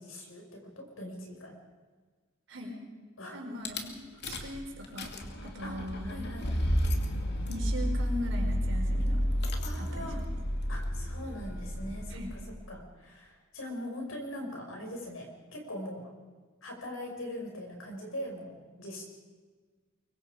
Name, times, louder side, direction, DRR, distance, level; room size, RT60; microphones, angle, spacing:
voice 1, 0.0-1.6 3.2-3.4 4.3-4.4 5.6-6.7 9.6-10.2 10.7-12.4 12.7-16.1 16.6-19.0, left 1 dB, 80° left, 1 dB, 5.8 m, -41 dB
voice 2, 3.3-5.1 5.4-6.3 7.5-9.2 9.8-10.1 12.1-12.3, equal, 65° right, 1 dB, 4.9 m, -39 dB
Rattle / Car / Engine starting, 3.7-3.8 4.2-4.6 4.8-12.6, equal, 55° left, 2.4 m, -31 dB
24.5 x 23.5 x 5.1 m, 1.5 s
head